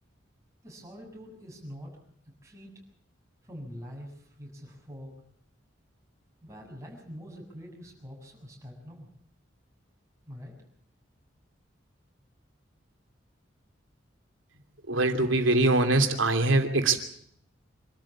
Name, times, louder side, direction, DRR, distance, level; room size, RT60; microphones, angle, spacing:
voice 1, 0.6-2.0 2.4-2.7 3.4-5.1 6.4-9.1 10.3-10.6, equal, 15° right, -2 dB, 7.3 m, -44 dB
voice 2, 14.9-17.0, right 2 dB, 90° right, 6 dB, 2.8 m, -23 dB
26.0 x 13.0 x 8.6 m, 0.68 s
head